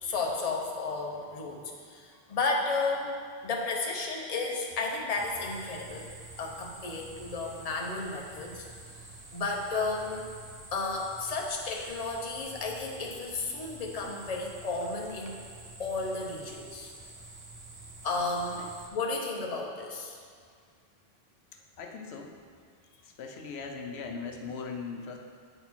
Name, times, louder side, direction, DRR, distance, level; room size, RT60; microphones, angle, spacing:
voice 1, 0.0-3.2 3.4-6.1 6.4-8.7 9.3-10.3 10.7-15.4 15.8-16.9 18.0-18.6 18.9-20.2, left 3 dB, 40° left, 0 dB, 0.8 m, -33 dB
sound 1, 5.1-18.9, right 2 dB, 25° right, 0.6 m, -48 dB
voice 2, 21.5-22.4 22.9-25.2, left 5 dB, 85° left, 2 dB, 0.9 m, -40 dB
8.9 x 4.1 x 4.3 m, 2.1 s
omnidirectional pair, 1.0 m